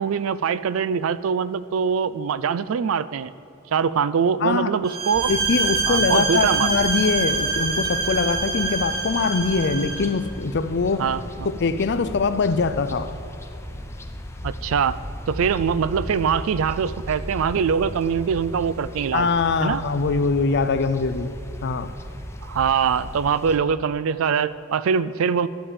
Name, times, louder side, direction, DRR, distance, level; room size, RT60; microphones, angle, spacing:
voice 1, 0.0-3.3 3.7-5.3 5.9-6.7 11.0-11.5 14.4-15.0 15.3-19.3 19.6-19.8 22.4-25.5, right 6 dB, 75° right, 16 dB, 0.4 m, -23 dB
voice 2, 4.4-4.7 5.3-11.0 11.4-13.1 19.1-21.3 21.6-21.9, left 4 dB, 55° left, 11 dB, 0.5 m, -23 dB
sound 1, 4.8-10.1, right 3 dB, 50° right, 1.2 m, -25 dB
sound 2, 5.1-23.6, equal, 15° left, 0.6 m, -36 dB
11.5 x 5.1 x 8.5 m, 2.7 s
head